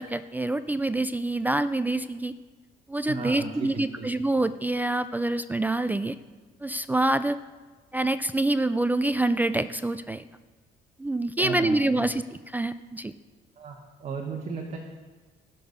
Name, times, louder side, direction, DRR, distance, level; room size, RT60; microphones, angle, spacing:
voice 1, 0.0-2.3 2.9-6.2 6.6-7.4 7.9-10.2 11.0-13.1, right 2 dB, 10° right, 13 dB, 0.3 m, -26 dB
voice 2, 3.1-4.1 11.4-12.0 13.6-14.8, right 4 dB, 40° right, 1 dB, 1.5 m, -35 dB
16.0 x 6.9 x 5.3 m, 1.3 s
cardioid pair, 110°, 17 cm